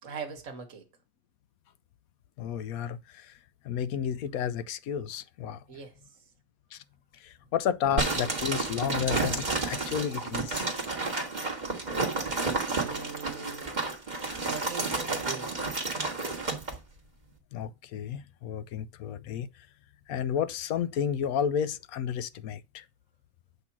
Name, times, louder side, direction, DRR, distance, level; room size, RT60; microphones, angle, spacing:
voice 1, 0.0-0.9 5.7-6.3 7.4-7.5 12.6-13.7 14.4-15.5, right 6 dB, 55° right, 1.7 m, -41 dB
voice 2, 2.4-3.3 3.6-5.6 6.7-6.8 7.2-10.7 17.5-19.5 20.1-22.8, left 8 dB, 75° left, 1.0 m, -31 dB
sound 1, 8.0-16.8, right 3 dB, 30° right, 1.7 m, -31 dB
8.2 x 2.9 x 5.8 m
omnidirectional pair, 1.6 m